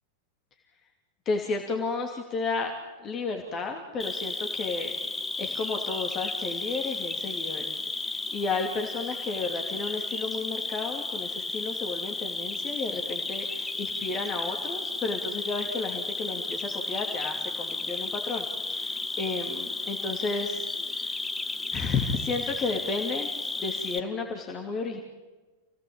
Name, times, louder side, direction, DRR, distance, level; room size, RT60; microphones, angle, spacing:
voice 1, 1.2-2.7 3.0-4.9 5.4-7.7 8.0-20.7 21.0-21.1 21.7-23.3 23.6-25.0, left 4 dB, 30° left, 3 dB, 2.9 m, -32 dB
Cricket, 4.0-24.0, left 3 dB, 10° left, 1.2 m, -33 dB
29.0 x 18.0 x 8.8 m, 1.3 s
figure-of-eight pair, 90°, 0 cm